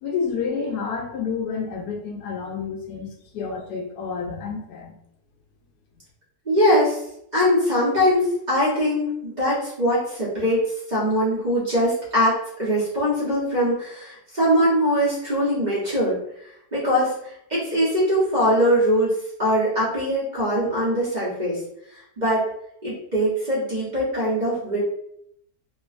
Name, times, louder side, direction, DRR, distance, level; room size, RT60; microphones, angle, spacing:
voice 1, 0.0-5.0, left 5 dB, 80° left, 1 dB, 1.2 m, -29 dB
voice 2, 6.4-7.0 7.3-16.2 16.7-19.1 19.4-21.6 22.2-22.4 22.8-24.8, equal, 30° right, -9 dB, 1.0 m, -22 dB
2.9 x 2.5 x 2.4 m, 0.73 s
omnidirectional pair, 1.7 m